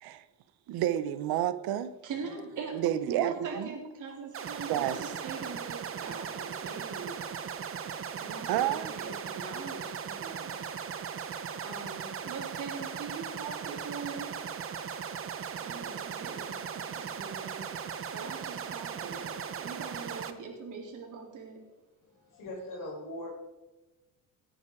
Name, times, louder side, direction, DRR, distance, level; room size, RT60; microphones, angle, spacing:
voice 1, 0.7-1.9 2.7-3.7 4.7-5.0 8.5-8.9, right 12 dB, 80° right, 0.9 m, -30 dB
voice 2, 2.0-2.8 3.0-7.2 8.2-10.6 11.6-14.3 15.6-17.6 18.1-21.6, right 5 dB, 55° right, 3.9 m, -42 dB
sound 1, 4.3-20.3, right 7 dB, 35° right, 0.9 m, -38 dB
voice 3, 22.0-23.3, left 1 dB, 60° left, 5.2 m, -41 dB
18.0 x 9.3 x 4.9 m
cardioid pair, 145°, 36 cm